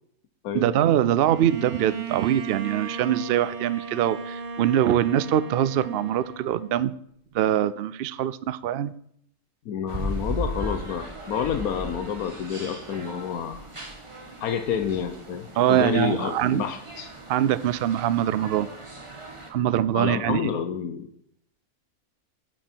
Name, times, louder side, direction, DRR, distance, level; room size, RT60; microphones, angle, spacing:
voice 1, 0.5-6.9 7.3-8.9 15.6-16.6 17.3-18.7 19.5-20.5, right 11 dB, 75° right, 16 dB, 0.5 m, -23 dB
Bowed string instrument, 1.3-7.0, right 5 dB, 45° right, 0.9 m, -36 dB
voice 2, 9.6-13.6 14.4-17.1 19.9-21.1, left 8 dB, 85° left, 8 dB, 1.3 m, -29 dB
sound 1, 9.9-19.5, equal, 20° right, 1.5 m, -37 dB
9.1 x 9.0 x 4.5 m, 0.69 s
omnidirectional pair, 1.5 m